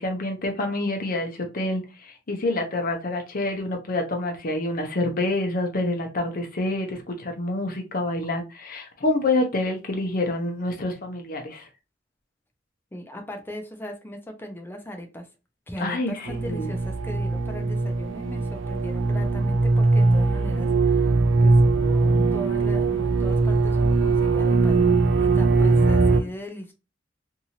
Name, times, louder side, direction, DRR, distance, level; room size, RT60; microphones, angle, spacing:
voice 1, 0.0-11.7 15.8-16.7, left 2 dB, 50° left, 0.8 m, -27 dB
voice 2, 12.9-15.3 15.7-26.7, equal, 10° left, 0.6 m, -38 dB
sound 1, 16.3-26.2, right 3 dB, 85° right, 0.4 m, -21 dB
2.7 x 2.6 x 2.8 m
head